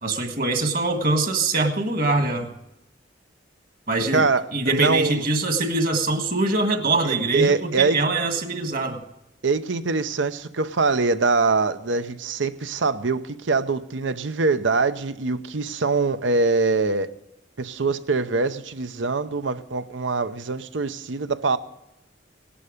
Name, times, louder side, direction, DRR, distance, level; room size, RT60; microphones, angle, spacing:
voice 1, 0.0-2.5 3.9-4.3 4.5-9.0, right 2 dB, 50° right, 6 dB, 1.7 m, -23 dB
voice 2, 4.1-5.3 7.0-8.0 9.4-17.1 17.6-21.6, right 4 dB, 90° right, 12 dB, 0.8 m, -23 dB
18.0 x 11.5 x 5.1 m, 0.88 s
head